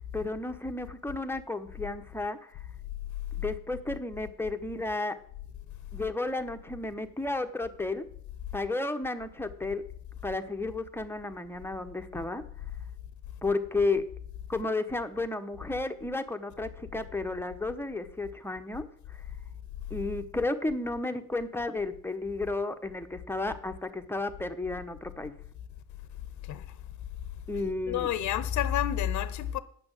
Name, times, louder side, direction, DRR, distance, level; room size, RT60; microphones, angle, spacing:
voice 1, 0.0-2.4 3.4-5.2 5.9-8.1 8.5-9.8 10.2-12.4 13.4-14.0 14.5-18.9 19.9-25.3 27.5-28.1, left 2 dB, 10° left, 1.0 m, -32 dB
voice 2, 27.9-29.6, left 10 dB, 70° left, 0.7 m, -29 dB
9.0 x 6.1 x 7.6 m
cardioid pair, 90°, 30 cm